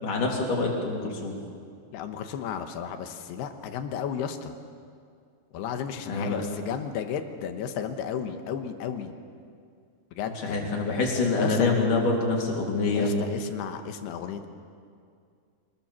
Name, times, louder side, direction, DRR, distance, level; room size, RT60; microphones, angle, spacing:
voice 1, 0.0-1.4 6.1-6.4 10.4-13.2, left 3 dB, 50° left, -1 dB, 4.5 m, -26 dB
voice 2, 1.9-4.5 5.5-9.1 10.1-10.7 11.4-11.8 12.9-14.5, left 8 dB, 75° left, 7 dB, 3.0 m, -33 dB
25.5 x 20.5 x 7.2 m, 2.2 s
omnidirectional pair, 5.2 m